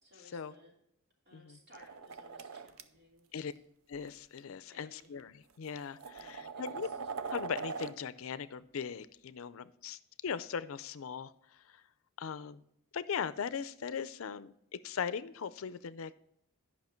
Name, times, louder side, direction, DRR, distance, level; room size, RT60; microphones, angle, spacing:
voice 1, 0.0-0.8 1.2-3.5 4.7-5.2 6.2-7.1, left 1 dB, 50° right, -2 dB, 2.8 m, -61 dB
sound 1, 1.7-2.8 3.9-4.1 5.0-5.1 5.7-7.9, right 5 dB, 85° right, 0.6 m, -41 dB
voice 2, 3.9-6.9 7.3-11.3 11.7-11.8 12.2-12.6 12.9-14.5 14.8-16.2, left 6 dB, 75° left, 15 dB, 0.5 m, -39 dB
10.5 x 5.7 x 4.4 m, 0.75 s
head